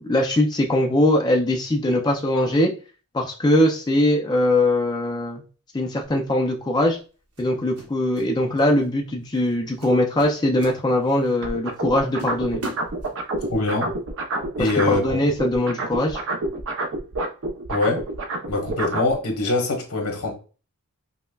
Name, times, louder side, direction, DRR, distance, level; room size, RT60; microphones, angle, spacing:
voice 1, 0.0-2.7 3.1-5.4 5.7-7.0 7.4-12.6 14.6-16.2, left 1 dB, 20° left, 0.4 m, -21 dB
sound 1, 6.0-6.3 7.4-8.3 8.6-8.9 9.3-9.5 9.8-11.3 11.7-11.8 12.2-13.5, right 2 dB, 80° right, 1.0 m, -38 dB
sound 2, 11.4-15.1 15.3-19.1, right 2 dB, 60° right, 0.6 m, -28 dB
voice 2, 13.5-13.9 14.6-15.2 17.7-18.0 18.5-20.3, left 2 dB, 80° left, 1.2 m, -23 dB
5.4 x 2.1 x 2.3 m
head